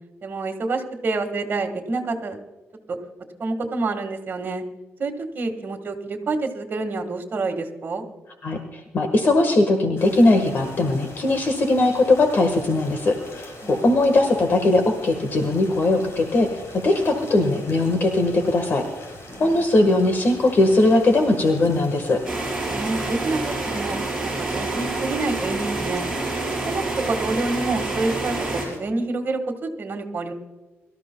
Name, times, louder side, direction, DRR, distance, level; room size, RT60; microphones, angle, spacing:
voice 1, 0.2-2.4 2.9-3.0 3.4-4.6 5.0-8.0 13.6-13.9 19.3-19.6 22.7-26.0 26.7-30.3, right 3 dB, 45° right, 4 dB, 1.8 m, -28 dB
voice 2, 8.4-16.5 16.7-18.8 19.4-22.2, left 2 dB, 50° left, 5 dB, 1.5 m, -19 dB
sound 1, 10.0-28.8, left 2 dB, 70° left, 4.7 m, -42 dB
sound 2, 22.2-28.6, right 2 dB, 5° right, 5.1 m, -27 dB
24.0 x 13.5 x 2.3 m, 1.2 s
cardioid pair, 130°, 5 cm